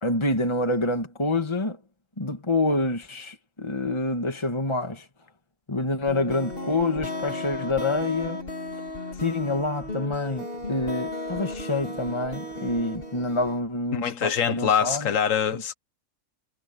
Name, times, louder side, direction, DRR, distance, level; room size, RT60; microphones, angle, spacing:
voice 1, 0.0-1.8 2.2-5.1 5.7-8.4 9.1-15.1 15.5-15.6, left 2 dB, 20° left, 2.1 m, -27 dB
sound 1, 6.1-13.6, left 1 dB, 45° left, 3.9 m, -35 dB
voice 2, 13.9-15.7, left 8 dB, 85° left, 1.4 m, -24 dB
omnidirectional pair, 1.3 m